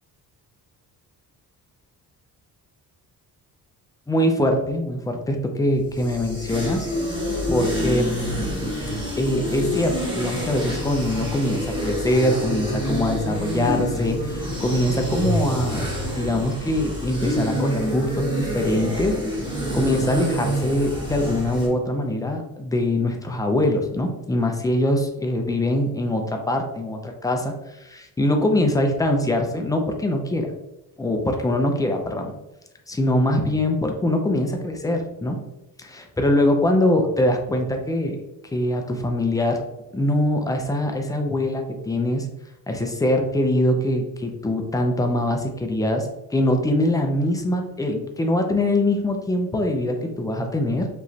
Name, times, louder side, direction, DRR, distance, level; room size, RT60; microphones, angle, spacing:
voice 1, 4.1-6.9 7.5-8.5 9.2-19.2 19.7-27.5 27.8-30.5 31.0-32.3 32.9-35.4 35.8-38.2 38.5-39.6 39.9-42.3 42.7-50.9, left 1 dB, 10° left, 3 dB, 0.4 m, -23 dB
sound 1, 5.7-21.7, equal, 15° right, 1.0 m, -27 dB
4.8 x 3.2 x 2.7 m, 0.92 s
cardioid pair, 150°, 36 cm